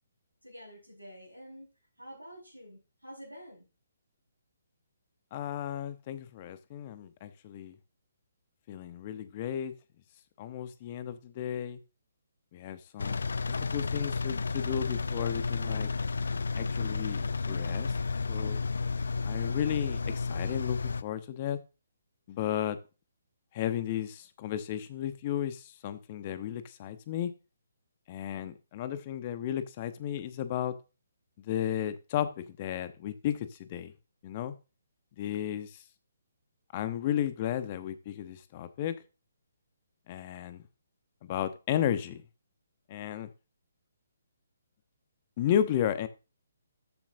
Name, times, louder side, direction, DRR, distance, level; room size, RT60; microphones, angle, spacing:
voice 1, 0.4-1.7 2.0-3.7, equal, 90° right, 5.2 m, -48 dB
voice 2, 5.3-7.8 8.7-9.7 10.4-11.8 12.5-13.3 13.7-15.9 16.5-17.9 18.3-18.6 19.2-21.6 22.3-22.8 23.5-27.3 28.1-30.8 31.4-33.9 34.2-34.5 35.2-35.8 36.7-39.0 40.1-40.6 41.2-42.2 42.9-43.3 45.4-46.1, left 10 dB, 35° left, 0.9 m, -33 dB
Engine, 13.0-21.0, left 4 dB, 65° left, 0.5 m, -32 dB
13.5 x 7.4 x 2.7 m
figure-of-eight pair, 135°, 0 cm